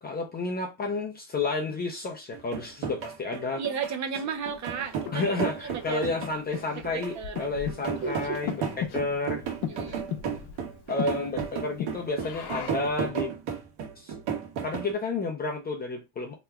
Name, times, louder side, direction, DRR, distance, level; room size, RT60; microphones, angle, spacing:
voice 1, 0.0-3.6 5.1-9.4 10.9-13.3 14.0-14.1 14.6-16.3, left 3 dB, 25° left, 0.4 m, -31 dB
sound 1, 2.3-14.9, right 7 dB, 75° right, 1.3 m, -34 dB
voice 2, 3.6-6.0 6.9-7.4 8.0-8.4 9.7-10.1, right 6 dB, 40° right, 0.6 m, -34 dB
Breathing, 4.5-13.0, left 9 dB, 60° left, 0.7 m, -38 dB
2.9 x 2.2 x 3.4 m
cardioid pair, 160°, 43 cm